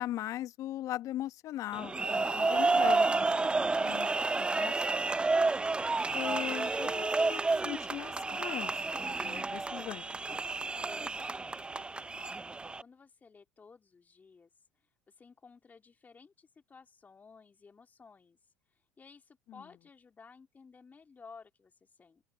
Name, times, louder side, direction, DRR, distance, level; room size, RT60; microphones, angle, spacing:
voice 1, 0.0-5.2 6.1-10.7 19.5-19.6, left 14 dB, 50° left, 1.4 m, -40 dB
sound 1, 1.7-12.8, right 3 dB, 15° right, 0.6 m, -30 dB
voice 2, 11.7-22.3, left 5 dB, 25° left, 2.6 m, -57 dB
open air
hypercardioid pair, 70°, 7 cm